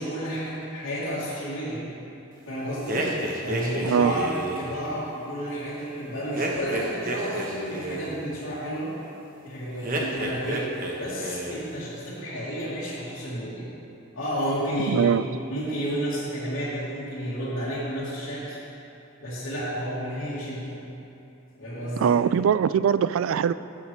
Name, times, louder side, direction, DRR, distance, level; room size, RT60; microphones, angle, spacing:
voice 1, 0.0-1.9 2.5-3.1 3.4-4.3 4.6-9.0 9.4-10.7 11.0-13.7 14.1-15.2 15.5-18.6 19.2-20.8 21.6-22.1, equal, 85° left, -13 dB, 2.5 m, -31 dB
sound 1, 2.9-4.7 6.3-8.2 9.8-10.9 11.2-11.7, right 1 dB, 45° right, 1.0 m, -30 dB
voice 2, 3.8-4.1 14.9-15.2 22.0-23.5, right 7 dB, 85° right, 15 dB, 0.3 m, -21 dB
14.0 x 8.2 x 3.3 m, 2.8 s
head